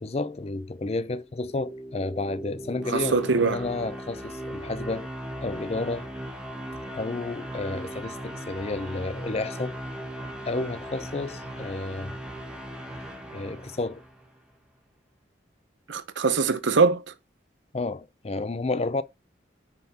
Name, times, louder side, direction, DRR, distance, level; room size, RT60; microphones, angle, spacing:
voice 1, 0.0-5.1 5.4-6.1 6.9-9.8 10.5-12.1 13.3-14.0 17.7-19.0, left 2 dB, 35° left, 0.5 m, -31 dB
sound 1, 1.2-14.4, right 1 dB, 5° right, 1.6 m, -38 dB
voice 2, 2.9-3.6 15.9-17.0, right 4 dB, 75° right, 0.8 m, -22 dB
8.8 x 5.8 x 2.9 m
head